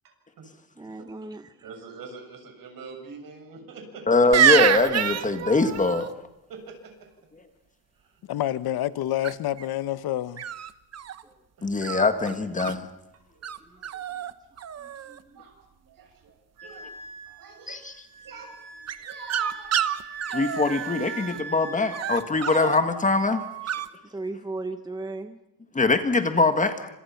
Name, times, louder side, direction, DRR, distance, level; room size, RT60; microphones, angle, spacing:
voice 1, 0.8-1.7 11.2-11.4 13.6-13.8 14.1-14.2 14.8-15.2 24.0-25.4, right 2 dB, 10° right, 1.0 m, -37 dB
voice 2, 1.6-4.0 6.5-7.1 8.0-8.1 11.6-11.7 13.3-14.1 14.6-17.0 17.3-17.8 18.2-19.9, right 4 dB, 65° right, 6.7 m, -45 dB
voice 3, 4.1-6.1 11.6-12.9 17.7-17.9 20.3-23.4 25.7-26.9, left 3 dB, 20° left, 1.6 m, -23 dB
sound 1, 4.3-6.1 9.2-9.6 10.4-11.2 11.8-12.7 13.4-13.6 13.8-14.3 14.6-15.2 18.9-21.4 21.9-22.8 23.7-23.9, right 9 dB, 45° right, 1.1 m, -26 dB
voice 4, 8.3-10.4, left 13 dB, 85° left, 1.0 m, -28 dB
Wind instrument woodwind instrument, 16.6-23.0 23.3-23.9, right 5 dB, 85° right, 5.8 m, -41 dB
28.5 x 26.5 x 5.9 m
wide cardioid pair, 170°, 36 cm